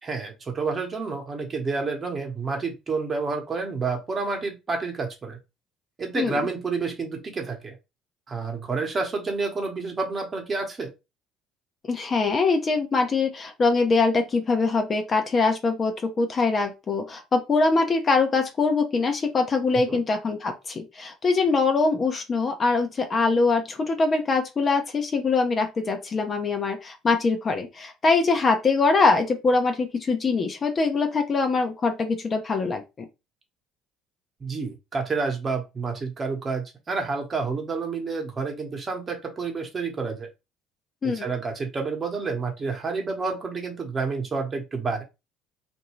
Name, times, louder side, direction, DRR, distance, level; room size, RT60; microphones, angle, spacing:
voice 1, 0.0-5.4 6.0-7.8 8.3-10.9 19.7-20.0 34.4-40.3 41.0-45.0, right 4 dB, 35° right, 1.0 m, -29 dB
voice 2, 11.9-32.8 41.0-41.3, left 4 dB, 35° left, 0.6 m, -23 dB
2.6 x 2.2 x 3.0 m
supercardioid pair, 85°, 0 cm